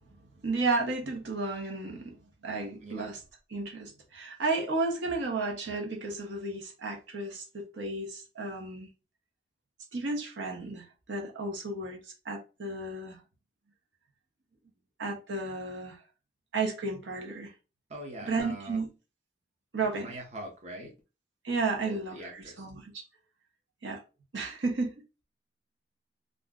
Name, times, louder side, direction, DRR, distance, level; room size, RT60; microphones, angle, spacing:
voice 1, 0.4-2.2 2.4-3.2 3.5-8.9 9.9-12.0 12.2-13.2 15.0-16.0 16.5-17.5 18.2-18.9 19.7-20.2 21.4-23.0 23.8-24.0 24.3-24.9, right 3 dB, 75° right, 0.7 m, -33 dB
voice 2, 2.8-3.1 17.9-18.8 20.0-20.9 21.8-22.7, right 1 dB, 35° right, 0.6 m, -42 dB
2.4 x 2.0 x 3.5 m
head